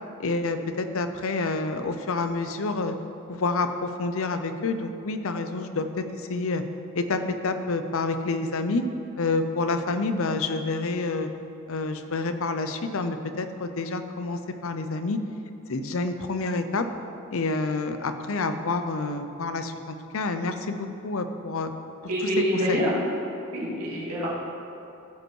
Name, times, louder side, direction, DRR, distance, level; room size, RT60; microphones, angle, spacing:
voice 1, 0.2-3.0 3.3-6.6 6.9-8.8 9.2-11.3 11.7-15.2 15.7-16.9 17.3-21.7 22.7-22.8, left 3 dB, 65° left, 8 dB, 0.6 m, -28 dB
voice 2, 22.1-23.0 23.5-24.3, equal, 90° right, -7 dB, 2.5 m, -26 dB
15.0 x 5.2 x 4.7 m, 2.7 s
head